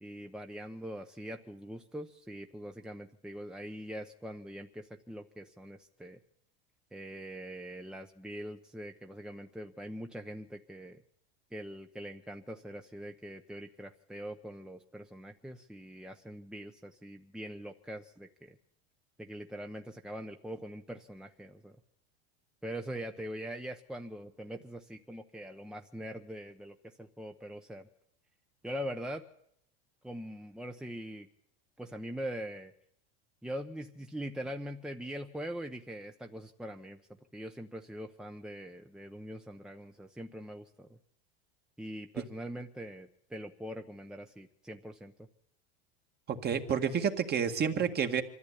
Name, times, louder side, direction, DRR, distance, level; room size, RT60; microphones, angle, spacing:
voice 1, 0.0-6.2 6.9-11.0 11.5-18.6 19.2-21.8 22.6-27.9 28.6-29.2 30.0-31.3 31.8-32.7 33.4-37.0 37.3-41.0 41.8-45.3, equal, ahead, 5 dB, 1.0 m, -42 dB
voice 2, 46.3-48.2, right 7 dB, 30° right, 6 dB, 2.0 m, -29 dB
24.5 x 14.0 x 10.0 m, 0.73 s
supercardioid pair, 125°, 31 cm